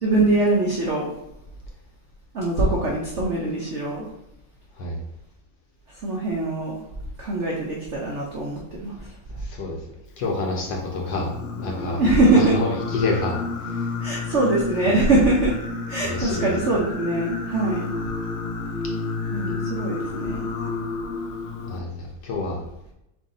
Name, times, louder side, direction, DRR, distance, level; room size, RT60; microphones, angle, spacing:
voice 1, 0.0-1.1 2.3-4.1 6.0-6.8 7.2-9.1 12.0-12.5 14.0-15.5 15.9-17.9 19.3-20.5, right 2 dB, 75° right, -3 dB, 0.6 m, -22 dB
voice 2, 9.3-9.8 10.2-11.3 11.6-12.0 12.4-13.9 14.8-15.0 16.0-16.5 21.7-22.6, left 2 dB, 65° left, 0 dB, 1.2 m, -28 dB
Singing, 11.1-21.8, left 4 dB, 90° left, 1.4 m, -31 dB
7.0 x 2.7 x 2.7 m, 0.85 s
omnidirectional pair, 2.2 m